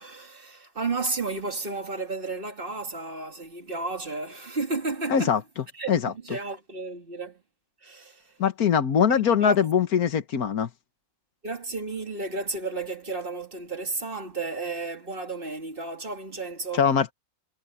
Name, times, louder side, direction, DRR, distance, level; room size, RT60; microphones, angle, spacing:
voice 1, 0.0-5.4 5.7-7.4 7.8-8.4 9.1-9.6 11.4-16.9, right 3 dB, 35° right, 2.2 m, -33 dB
voice 2, 5.1-5.4 5.9-6.1 8.4-10.7 16.8-17.1, left 7 dB, 80° left, 1.7 m, -22 dB
omnidirectional pair, 1.6 m